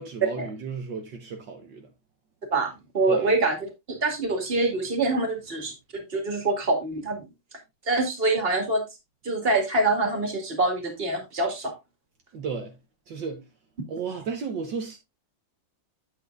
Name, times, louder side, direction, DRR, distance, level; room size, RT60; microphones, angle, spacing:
voice 1, 0.0-1.9 3.1-3.3 12.3-12.8 13.1-13.4 13.9-15.0, right 5 dB, 70° right, 1.7 m, -33 dB
voice 2, 2.5-7.3 7.9-8.8 9.2-11.7, right 2 dB, 30° right, 2.2 m, -25 dB
8.4 x 8.4 x 2.5 m
omnidirectional pair, 2.1 m